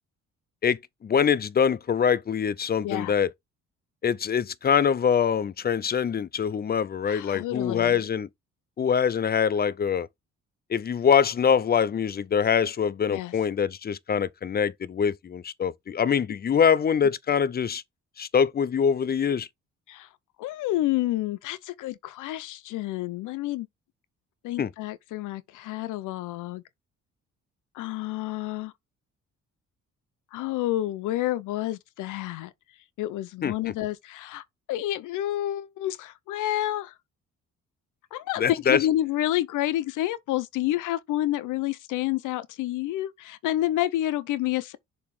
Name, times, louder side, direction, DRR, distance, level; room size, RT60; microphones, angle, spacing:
voice 1, 0.6-3.3 4.0-8.3 8.8-10.1 10.7-17.8 18.2-19.5 24.6-24.7 33.4-33.5 38.4-38.8, left 7 dB, 35° left, 0.5 m, -24 dB
voice 2, 7.1-8.0 13.1-13.3 19.9-20.1 20.4-23.7 24.4-26.6 27.7-28.7 30.3-32.5 33.0-36.9 38.1-44.8, left 14 dB, 90° left, 0.7 m, -29 dB
6.8 x 3.0 x 4.8 m
cardioid pair, 90°, 30 cm